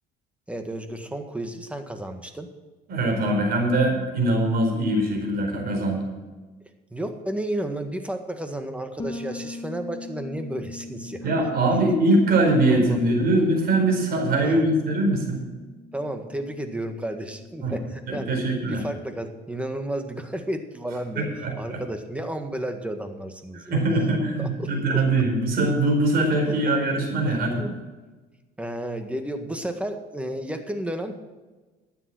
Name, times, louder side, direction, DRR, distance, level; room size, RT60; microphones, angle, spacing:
voice 1, 0.5-2.5 6.9-11.3 12.7-13.3 14.4-14.6 15.9-18.3 18.7-23.8 24.4-25.0 27.6-27.8 28.6-31.2, right 1 dB, 5° right, 6 dB, 1.7 m, -32 dB
voice 2, 2.9-6.0 11.2-15.4 17.6-17.7 18.1-18.8 21.2-21.8 23.5-27.6, right 2 dB, 65° right, 2 dB, 4.7 m, -22 dB
Bass guitar, 9.0-18.7, left 2 dB, 25° left, 1.9 m, -42 dB
12.5 x 9.3 x 6.2 m, 1.2 s
cardioid pair, 110°, 17 cm